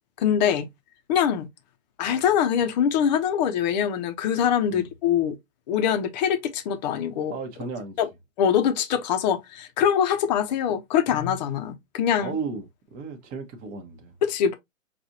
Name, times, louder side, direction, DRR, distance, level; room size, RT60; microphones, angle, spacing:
voice 1, 0.2-0.7 1.1-1.5 2.0-5.4 5.7-7.4 8.0-8.1 8.4-12.3 14.2-14.6, left 8 dB, 35° left, 0.9 m, -23 dB
voice 2, 7.3-8.0 12.2-14.1, right 4 dB, 20° right, 1.1 m, -34 dB
5.9 x 2.6 x 2.8 m
figure-of-eight pair, 125°, 39 cm